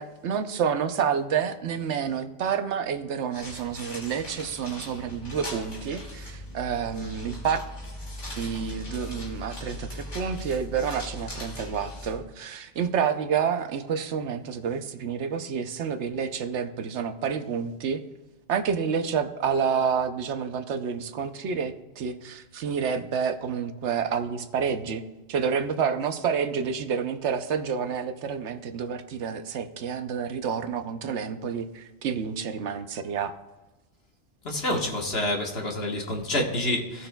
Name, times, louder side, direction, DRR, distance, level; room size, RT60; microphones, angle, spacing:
voice 1, 0.0-7.6 8.4-18.0 18.5-25.0 25.3-33.3, right 7 dB, 75° right, 9 dB, 1.0 m, -29 dB
sound 1, 3.3-12.2, left 1 dB, 80° left, 2.6 m, -39 dB
voice 2, 34.4-37.1, left 1 dB, 60° left, 1 dB, 1.5 m, -28 dB
17.0 x 6.4 x 2.2 m, 1.2 s
omnidirectional pair, 1.2 m